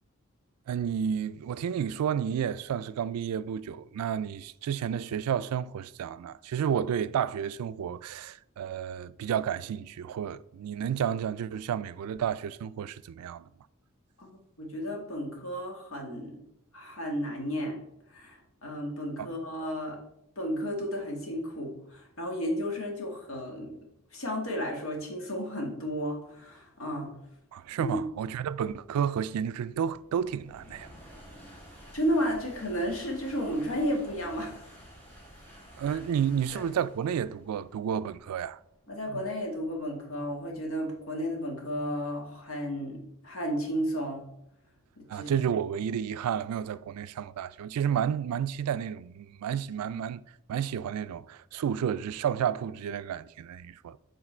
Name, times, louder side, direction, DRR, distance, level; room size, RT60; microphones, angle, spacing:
voice 1, 0.7-13.5 19.2-19.3 27.5-30.9 35.8-38.6 39.1-39.2 45.1-50.2 50.5-54.0, right 8 dB, 85° right, 0.3 m, -31 dB
voice 2, 14.6-16.4 16.7-17.8 18.1-20.0 20.4-23.8 24.1-27.1 27.8-28.0 31.9-34.6 35.9-36.0 36.5-36.6 38.9-43.0 43.2-44.2 45.0-45.3, equal, 70° left, 1.6 m, -33 dB
sound 1, 28.1-40.9, equal, 10° left, 2.2 m, -52 dB
7.2 x 3.8 x 4.3 m
head